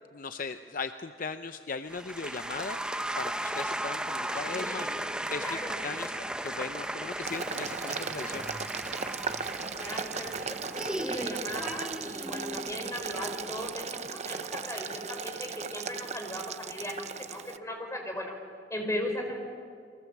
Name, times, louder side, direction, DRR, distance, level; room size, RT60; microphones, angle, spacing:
voice 1, 0.1-2.8 3.2-8.5, left 4 dB, 50° left, 9 dB, 0.7 m, -38 dB
sound 1, 1.9-13.8, right 1 dB, 5° right, 0.8 m, -36 dB
voice 2, 4.4-5.0 5.4-5.8 9.8-18.3 18.7-19.4, left 1 dB, 15° left, 3 dB, 4.6 m, -37 dB
Boiling, 7.3-17.6, right 6 dB, 40° right, 0.7 m, -37 dB
29.5 x 23.0 x 7.3 m, 2.3 s
head